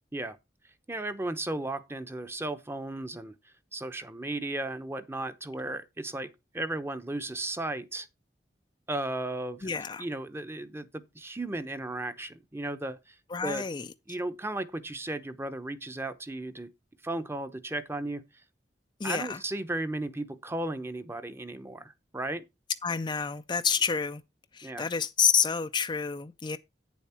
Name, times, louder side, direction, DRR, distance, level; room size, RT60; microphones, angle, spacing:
voice 1, 0.9-3.3 3.7-8.1 8.9-9.7 10.0-13.1 13.4-13.6 14.1-16.7 17.0-18.2 19.0-22.4 24.6-24.9, right 2 dB, 15° right, 0.8 m, -35 dB
voice 2, 9.6-10.1 13.3-13.9 19.0-19.4 22.8-24.2 24.5-26.6, left 6 dB, 25° left, 0.4 m, -28 dB
9.2 x 7.2 x 4.3 m
head